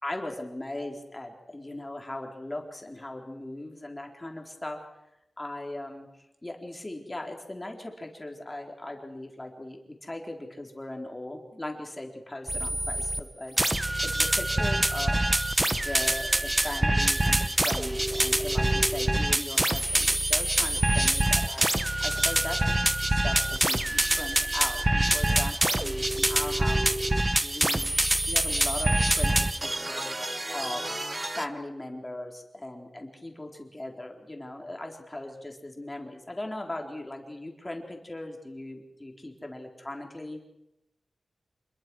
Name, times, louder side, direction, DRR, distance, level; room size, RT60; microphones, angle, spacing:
voice 1, 0.0-4.8 5.4-6.1 6.4-15.2 15.8-22.6 23.0-26.9 27.4-27.9 28.3-30.2 30.5-30.8 31.3-40.4, left 1 dB, 20° left, 2 dB, 4.2 m, -38 dB
sound 1, 12.5-13.2 13.6-31.5, right 1 dB, 20° right, 1.1 m, -25 dB
27.0 x 21.5 x 6.3 m, 0.88 s
wide cardioid pair, 110°, 0 cm